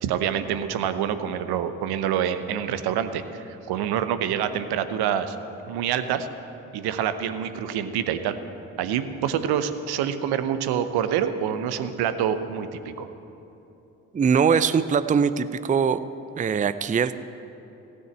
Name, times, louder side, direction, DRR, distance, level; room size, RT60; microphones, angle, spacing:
voice 1, 0.0-5.4 5.6-6.3 6.7-8.4 8.8-13.1, right 9 dB, 65° right, 10 dB, 0.9 m, -26 dB
voice 2, 14.1-16.1 16.4-17.2, right 6 dB, 20° right, 13 dB, 0.5 m, -22 dB
16.0 x 6.5 x 8.7 m, 2.9 s
hypercardioid pair, 40°, 40 cm